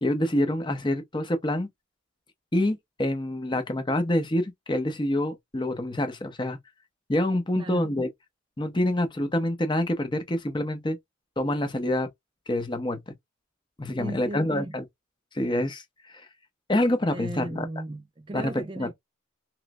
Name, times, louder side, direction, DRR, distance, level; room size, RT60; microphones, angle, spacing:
voice 1, 0.0-1.7 2.5-6.6 7.1-8.1 8.6-11.0 11.4-12.1 12.5-13.0 13.8-14.8 15.3-16.3 16.7-17.7 18.3-18.4 18.8-18.9, left 1 dB, 20° left, 0.7 m, -26 dB
voice 2, 7.6-7.9 14.0-14.8 17.1-18.9, right 2 dB, 25° right, 0.3 m, -36 dB
3.1 x 3.0 x 2.3 m
head